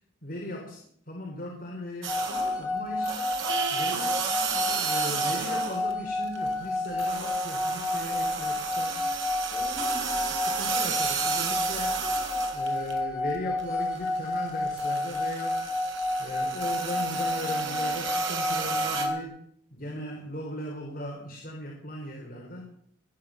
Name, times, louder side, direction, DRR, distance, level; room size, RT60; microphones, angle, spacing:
voice 1, 0.2-3.2 3.7-9.0 9.5-12.1 12.5-15.6 16.2-19.4 19.7-22.6, left 1 dB, 45° left, -1 dB, 3.6 m, -38 dB
sound 1, 2.0-2.6 3.0-5.9 6.2-13.0 13.4-19.1, right 6 dB, 85° right, 3.6 m, -33 dB
sound 2, 2.1-19.2, left 2 dB, 5° right, 5.6 m, -30 dB
23.0 x 9.2 x 6.3 m, 0.64 s
head